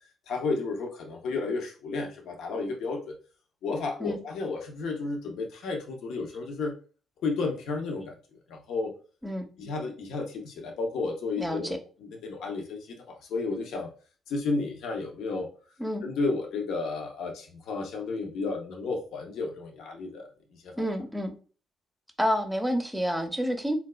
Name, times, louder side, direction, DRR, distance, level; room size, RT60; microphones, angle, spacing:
voice 1, 0.3-3.1 3.6-6.7 7.2-8.2 8.5-8.9 9.6-13.9 14.3-15.5 16.0-20.3 20.5-20.9, left 3 dB, 80° left, 1 dB, 0.7 m, -32 dB
voice 2, 11.4-11.8 15.8-16.0 20.8-21.3 22.2-23.7, equal, 10° right, 6 dB, 0.6 m, -29 dB
4.0 x 2.3 x 2.2 m, 0.38 s
cardioid pair, 90°, 0 cm